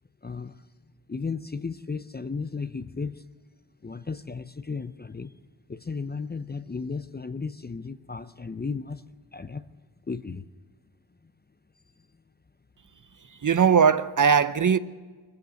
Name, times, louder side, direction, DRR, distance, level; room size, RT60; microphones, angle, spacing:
voice 1, 0.2-0.5 1.1-3.2 3.8-5.3 5.7-9.0 9.3-9.7 10.1-10.4, left 4 dB, 20° left, 0.6 m, -34 dB
voice 2, 13.4-14.8, right 6 dB, 40° right, 0.8 m, -19 dB
22.0 x 15.0 x 8.2 m
cardioid pair, 75°, 47 cm